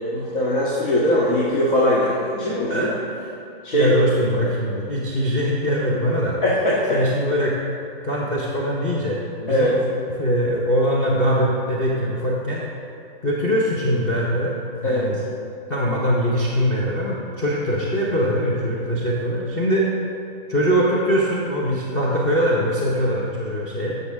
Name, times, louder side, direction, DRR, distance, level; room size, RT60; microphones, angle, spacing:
voice 1, 0.0-2.9 3.6-3.9 6.4-7.0 9.5-9.8 14.8-15.1, left 1 dB, 60° left, -6 dB, 1.8 m, -21 dB
voice 2, 3.7-6.4 6.9-7.5 8.0-12.6 13.2-15.2 15.7-19.9 20.5-23.9, equal, 15° left, -5 dB, 0.9 m, -22 dB
13.0 x 6.6 x 3.6 m, 2.6 s
hypercardioid pair, 155°, 30 cm